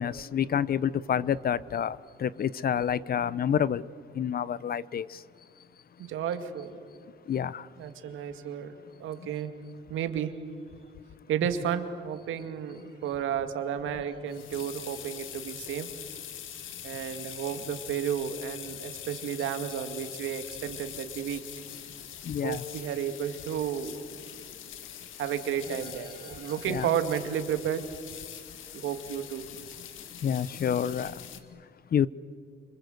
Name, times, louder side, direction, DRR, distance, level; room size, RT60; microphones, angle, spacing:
voice 1, 0.0-3.9 4.1-5.2 6.0-6.1 7.3-7.7 8.1-8.2 9.2-9.3 12.8-12.9 22.2-22.6 26.2-26.3 26.6-26.9 30.0-32.1, left 8 dB, 50° left, 0.7 m, -29 dB
voice 2, 6.0-6.8 7.8-9.5 9.9-10.3 11.3-15.9 16.8-21.4 22.4-24.0 25.2-27.8 28.7-29.4, right 9 dB, 85° right, 2.2 m, -32 dB
sound 1, 13.9-31.4, left 10 dB, 80° left, 2.1 m, -43 dB
28.5 x 25.5 x 8.0 m
cardioid pair, 90°, 20 cm